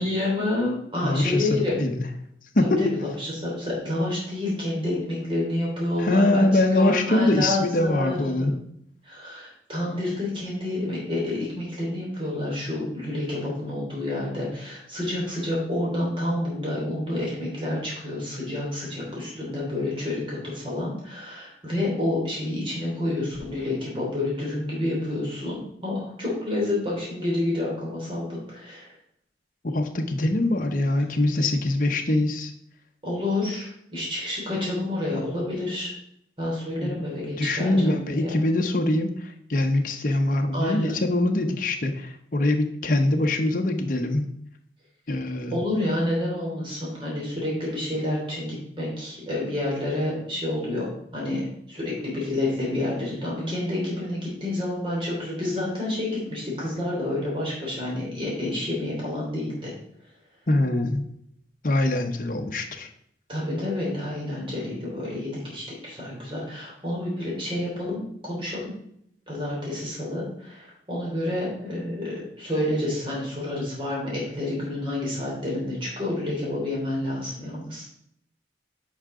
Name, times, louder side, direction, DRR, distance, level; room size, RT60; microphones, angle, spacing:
voice 1, 0.0-1.8 2.8-6.5 6.7-8.5 9.0-28.9 33.0-35.9 36.4-38.3 40.5-40.9 45.5-51.4 51.7-59.7 63.3-68.7 69.3-77.9, left 1 dB, 30° right, -4 dB, 3.0 m, -29 dB
voice 2, 1.0-1.5 1.7-2.0 2.5-2.9 6.0-8.6 29.6-32.5 36.8-37.0 37.4-44.3 45.1-45.6 60.5-61.1 61.6-62.9, left 2 dB, 45° left, 4 dB, 0.8 m, -23 dB
8.6 x 5.7 x 3.7 m, 0.71 s
head